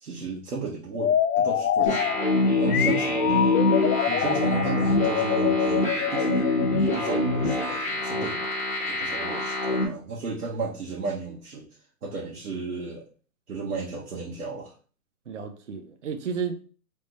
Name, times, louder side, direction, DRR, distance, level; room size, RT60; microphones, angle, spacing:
voice 1, 0.0-2.1 2.6-3.6 4.2-6.5 6.8-8.4 8.9-11.7 12.0-13.1 13.5-14.7, right 4 dB, 80° right, 1.6 m, -34 dB
sound 1, 0.9-7.6, left 9 dB, 80° left, 0.6 m, -26 dB
sound 2, 1.9-9.8, left 2 dB, 10° left, 0.7 m, -25 dB
voice 2, 15.3-16.7, right 6 dB, 55° right, 0.7 m, -33 dB
3.5 x 3.1 x 4.0 m
hypercardioid pair, 180°, 44 cm